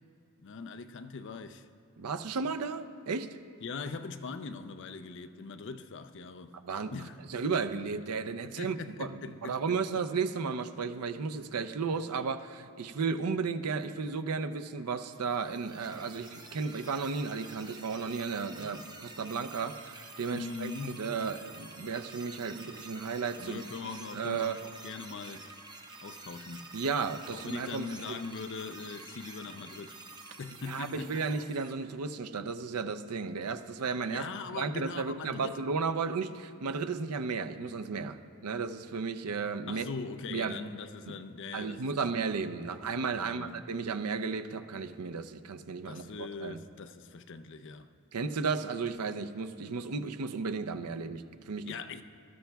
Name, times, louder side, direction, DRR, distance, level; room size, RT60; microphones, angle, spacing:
voice 1, 0.4-1.7 3.6-6.6 6.9-7.2 8.4-9.6 20.3-21.1 23.4-25.5 26.0-26.7 27.3-30.0 30.4-31.2 34.1-35.6 39.7-42.2 43.1-43.6 45.9-47.9 51.7-52.0, left 4 dB, 55° left, 0.5 m, -41 dB
voice 2, 2.0-3.3 6.6-6.9 7.3-23.7 24.1-24.6 26.7-28.2 30.7-34.3 34.5-38.2 38.4-39.9 40.3-40.6 41.5-46.6 48.1-51.7, right 5 dB, 85° right, 0.6 m, -34 dB
sound 1, 15.1-31.7, right 3 dB, 20° right, 0.7 m, -49 dB
20.0 x 12.5 x 2.3 m
head